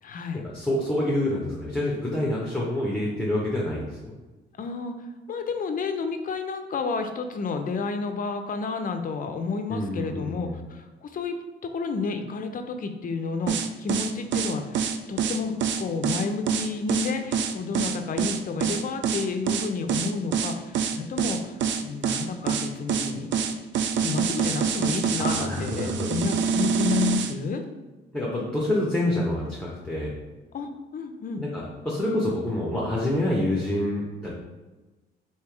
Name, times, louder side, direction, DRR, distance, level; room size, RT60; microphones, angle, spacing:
voice 1, 0.0-0.4 4.6-4.9 5.3-11.4 11.7-23.5 24.0-27.6 30.5-31.4, left 5 dB, 45° left, 7 dB, 0.5 m, -31 dB
voice 2, 0.5-4.1 9.7-10.6 25.2-26.2 28.1-30.1 31.4-34.3, left 1 dB, 5° left, -5 dB, 0.9 m, -27 dB
sound 1, 13.5-27.3, right 6 dB, 65° right, 0.4 m, -26 dB
3.4 x 2.8 x 4.5 m, 1.2 s
cardioid pair, 90°, 20 cm